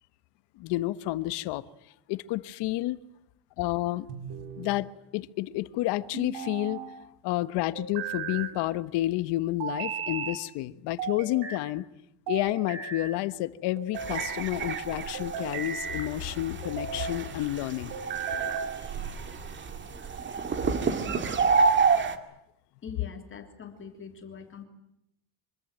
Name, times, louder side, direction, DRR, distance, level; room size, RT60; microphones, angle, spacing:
voice 1, 0.6-1.6 2.1-3.0 3.6-4.1 4.6-4.9 5.1-6.8 7.2-11.8 12.3-17.9, left 16 dB, 75° left, 1.3 m, -30 dB
sound 1, 4.1-4.8 6.1-6.9 7.8-8.6 9.6-10.4 11.0-11.7 12.3-13.1 13.8-14.4 15.1-16.1 16.6-17.2 17.9-18.7, right 6 dB, 85° right, 5.0 m, -35 dB
sound 2, 14.0-22.2, right 5 dB, 25° right, 2.0 m, -29 dB
voice 2, 22.8-24.6, left 6 dB, 30° left, 3.3 m, -43 dB
25.5 x 24.0 x 9.2 m
cardioid pair, 155°, 41 cm